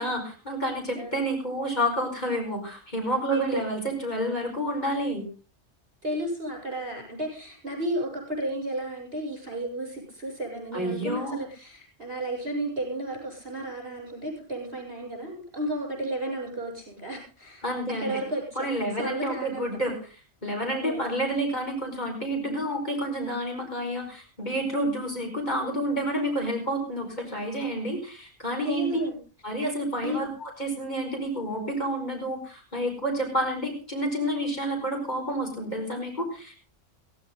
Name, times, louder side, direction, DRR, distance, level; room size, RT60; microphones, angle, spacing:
voice 1, 0.0-5.3 10.7-11.4 17.6-18.2 18.6-19.9 20.4-28.9 29.4-36.6, right 1 dB, 40° left, 1 dB, 5.2 m, -29 dB
voice 2, 3.3-3.6 6.0-17.7 18.0-18.7 19.0-19.8 20.8-21.2 28.6-29.2 29.9-30.2, right 1 dB, 50° right, 2 dB, 7.3 m, -33 dB
16.5 x 15.5 x 3.9 m, 0.34 s
omnidirectional pair, 1.2 m